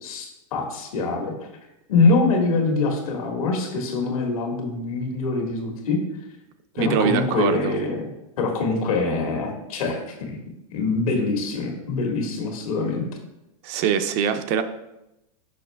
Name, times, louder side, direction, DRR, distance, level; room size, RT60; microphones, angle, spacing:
voice 1, 0.0-1.3 1.9-6.0 6.7-8.0 8.4-10.4 10.7-13.0, left 3 dB, 75° left, 2 dB, 1.7 m, -24 dB
voice 2, 6.8-7.7 13.6-14.6, right 7 dB, 40° right, 9 dB, 0.4 m, -23 dB
6.3 x 5.4 x 3.4 m, 0.90 s
supercardioid pair, 150°, 18 cm